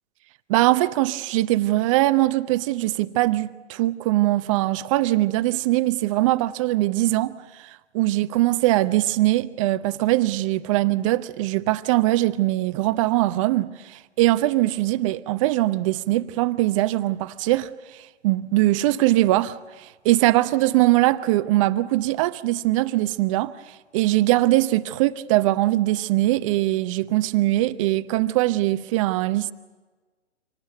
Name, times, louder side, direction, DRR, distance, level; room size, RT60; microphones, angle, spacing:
voice 1, 0.5-17.7 18.2-23.5 23.9-29.5, right 17 dB, 30° right, 0.8 m, -21 dB
26.5 x 19.0 x 8.2 m
hypercardioid pair, 135°, 35 cm